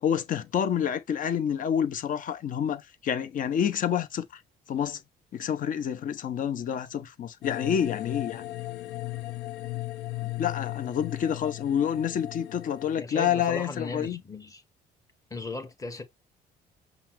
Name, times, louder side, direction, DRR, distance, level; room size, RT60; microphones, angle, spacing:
voice 1, 0.0-4.2 4.7-5.0 5.3-8.4 10.4-14.2, left 8 dB, 55° left, 0.8 m, -28 dB
sound 1, 7.4-13.0, left 17 dB, 85° left, 0.6 m, -36 dB
voice 2, 13.0-14.6 15.3-16.0, left 3 dB, 20° left, 1.3 m, -37 dB
5.7 x 2.0 x 4.4 m
cardioid pair, 110°, 17 cm